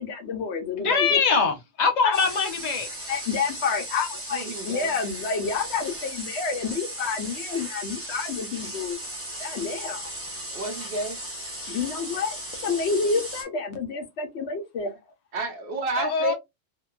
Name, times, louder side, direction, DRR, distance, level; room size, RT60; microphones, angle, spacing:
voice 1, 0.0-1.5 2.0-2.2 3.1-9.0 9.4-10.1 11.7-15.0, left 5 dB, 70° left, 0.9 m, -29 dB
voice 2, 0.8-2.9 16.0-16.3, left 5 dB, 45° left, 0.6 m, -23 dB
sound 1, 2.1-13.4, right 1 dB, 15° right, 0.6 m, -36 dB
voice 3, 4.3-4.9 10.5-11.2 15.3-16.3, right 3 dB, 60° right, 0.7 m, -30 dB
2.8 x 2.1 x 2.2 m
omnidirectional pair, 1.2 m